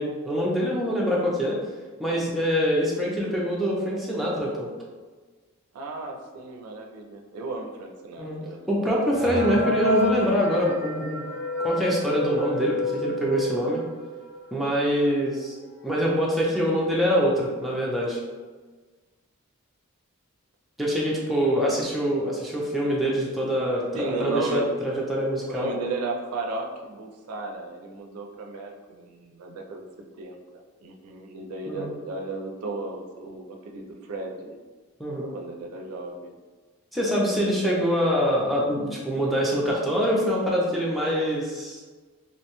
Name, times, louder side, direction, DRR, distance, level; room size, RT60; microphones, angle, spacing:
voice 1, 0.0-1.6 2.0-4.7 8.2-8.4 8.7-11.3 11.6-13.8 14.5-15.6 15.8-18.2 20.8-25.7 31.7-31.9 35.0-35.3 36.9-41.8, equal, ahead, -5 dB, 0.4 m, -24 dB
voice 2, 5.7-9.5 23.9-24.7 25.5-34.6 35.2-36.4 37.0-37.4, right 3 dB, 85° right, 2 dB, 0.4 m, -35 dB
sound 1, 9.1-14.5 15.0-15.1 15.3-15.4 16.1-16.2 16.6-16.9, equal, 55° left, 1.0 m, -30 dB
2.6 x 2.1 x 2.9 m, 1.4 s
head